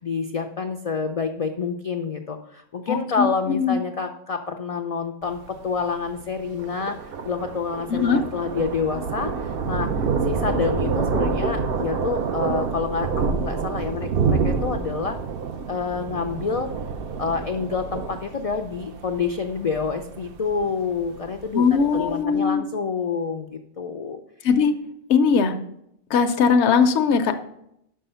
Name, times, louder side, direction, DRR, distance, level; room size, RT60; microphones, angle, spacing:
voice 1, 0.0-15.2 15.7-16.7 17.2-24.2, left 5 dB, 55° left, 5 dB, 0.4 m, -28 dB
voice 2, 2.9-3.7 7.9-8.2 21.5-22.6 24.4-24.7 25.1-25.5 26.1-27.4, left 6 dB, 80° left, 7 dB, 0.9 m, -20 dB
Thunder, 5.2-22.1, right 5 dB, 65° right, 0.8 m, -28 dB
6.1 x 5.5 x 5.5 m, 0.76 s
omnidirectional pair, 1.1 m